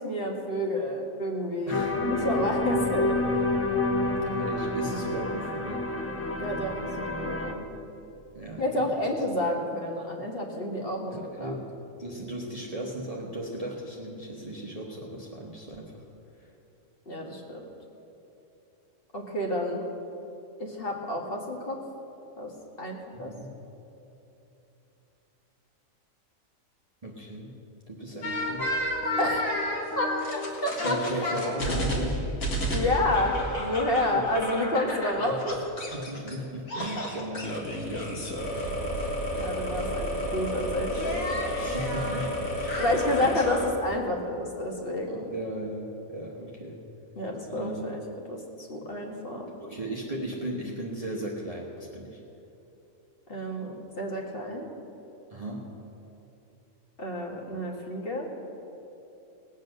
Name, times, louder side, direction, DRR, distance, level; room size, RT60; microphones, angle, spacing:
voice 1, 0.0-3.2 6.4-7.7 8.6-11.5 17.0-17.7 19.1-19.8 20.6-21.8 22.4-22.5 22.8-23.3 29.2-29.5 29.9-31.3 32.7-35.6 39.3-41.3 42.8-45.4 47.1-48.0 48.3-49.5 53.3-54.7 57.0-58.3, left 1 dB, 45° left, 0 dB, 1.7 m, -30 dB
sound 1, 1.7-7.5, left 2 dB, 15° left, 0.6 m, -28 dB
voice 2, 1.7-2.0 4.2-5.9 8.3-8.9 9.1-9.2 11.1-16.0 16.4-16.5 23.1-23.4 27.0-27.5 27.9-28.7 30.8-32.3 34.0-34.3 35.3-35.4 35.9-38.3 41.6-42.9 43.2-43.4 45.3-46.8 47.5-47.9 49.6-52.2 55.3-55.7, right 1 dB, 30° right, -3 dB, 1.2 m, -37 dB
sound 2, 28.2-36.4 36.7-43.7, equal, 80° left, 2.2 m, -31 dB
18.5 x 8.3 x 6.4 m, 2.9 s
omnidirectional pair, 1.4 m